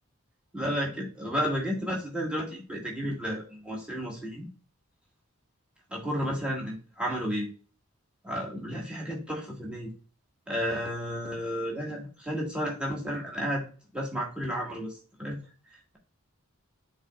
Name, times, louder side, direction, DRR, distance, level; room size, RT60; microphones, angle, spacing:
voice 1, 0.5-4.5 5.9-7.5 8.2-9.9 10.5-13.6 13.9-14.9 15.2-15.4, equal, 5° right, -3 dB, 1.8 m, -32 dB
9.6 x 4.1 x 2.4 m, 0.37 s
head